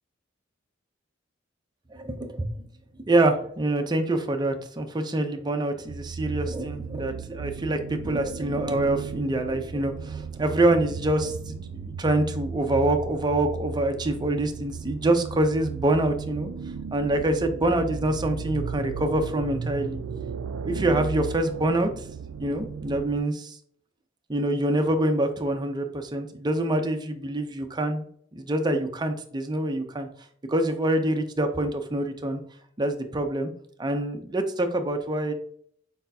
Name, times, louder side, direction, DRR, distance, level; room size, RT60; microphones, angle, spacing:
voice 1, 1.9-2.5 3.0-16.5 16.9-20.0 20.6-21.9 22.4-23.6 24.3-28.1 28.3-30.1 30.5-32.4 32.8-33.5 33.8-35.3, right 1 dB, 20° right, 5 dB, 0.6 m, -25 dB
sound 1, 5.9-23.2, right 5 dB, 80° right, 0.4 m, -35 dB
4.3 x 4.2 x 2.7 m, 0.63 s
head